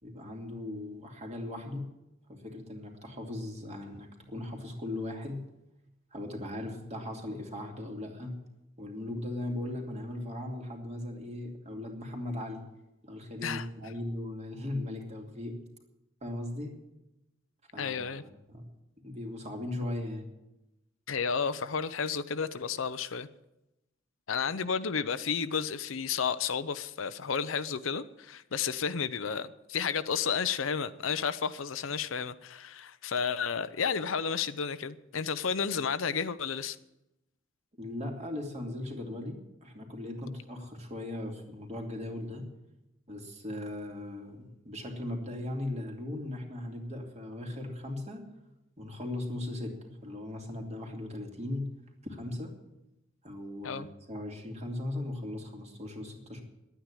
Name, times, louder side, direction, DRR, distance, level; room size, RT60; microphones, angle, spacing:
voice 1, 0.0-1.9 2.3-5.4 6.1-8.4 8.8-12.6 13.0-15.6 16.2-16.8 17.7-18.7 19.0-20.3 37.8-42.4 43.1-48.2 48.8-51.7 52.0-52.5 53.2-56.4, left 1 dB, 35° right, 2 dB, 2.5 m, -38 dB
voice 2, 17.8-18.2 21.1-23.3 24.3-36.8 53.6-53.9, left 6 dB, 80° left, 13 dB, 0.7 m, -32 dB
11.5 x 9.3 x 9.9 m, 0.92 s
head